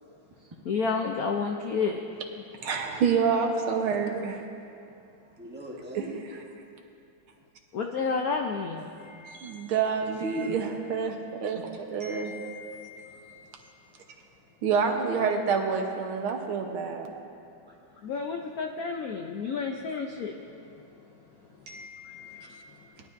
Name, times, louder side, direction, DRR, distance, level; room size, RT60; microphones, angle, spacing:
voice 1, 0.6-2.0 7.7-8.9 18.0-20.7, left 5 dB, 80° left, 3 dB, 0.8 m, -30 dB
voice 2, 2.6-4.5 6.0-6.1 9.2-11.6 11.9-12.3 14.6-17.1, right 6 dB, 80° right, 2 dB, 1.9 m, -27 dB
voice 3, 5.2-6.4 10.2-10.6 13.0-13.5 14.9-15.0 17.7-18.2 22.0-22.6, equal, 5° right, -2 dB, 0.8 m, -46 dB
voice 4, 9.0-9.6 12.0-13.4 21.7-22.4, left 4 dB, 40° right, -2 dB, 0.3 m, -46 dB
20.0 x 11.5 x 2.6 m, 2.6 s
omnidirectional pair, 2.3 m